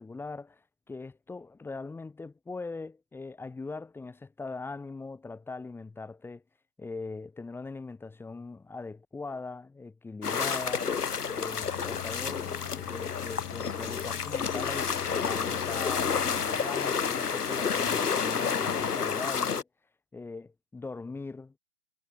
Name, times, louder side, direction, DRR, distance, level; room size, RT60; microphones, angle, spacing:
voice 1, 0.0-6.4 6.8-10.9 11.3-19.7 20.1-21.5, left 3 dB, 5° left, 1.9 m, -41 dB
sound 1, 10.2-19.6, left 6 dB, 80° left, 1.0 m, -30 dB
sound 2, 11.6-18.1, left 34 dB, 30° left, 3.4 m, -43 dB
figure-of-eight pair, 120°, 46 cm